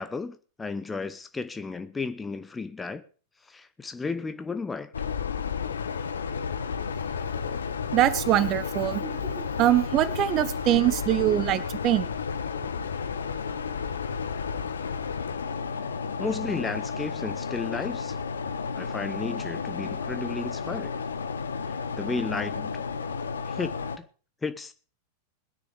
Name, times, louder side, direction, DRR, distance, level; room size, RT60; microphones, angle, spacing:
voice 1, 0.0-3.0 3.5-4.9 16.2-18.2 18.7-20.9 22.0-22.8 23.5-24.0 24.4-24.7, left 4 dB, 15° left, 0.9 m, -33 dB
sound 1, 4.9-24.0, left 6 dB, 70° left, 0.9 m, -32 dB
voice 2, 7.9-12.1, right 13 dB, 35° right, 1.1 m, -23 dB
21.5 x 9.9 x 3.4 m
figure-of-eight pair, 90°, 0 cm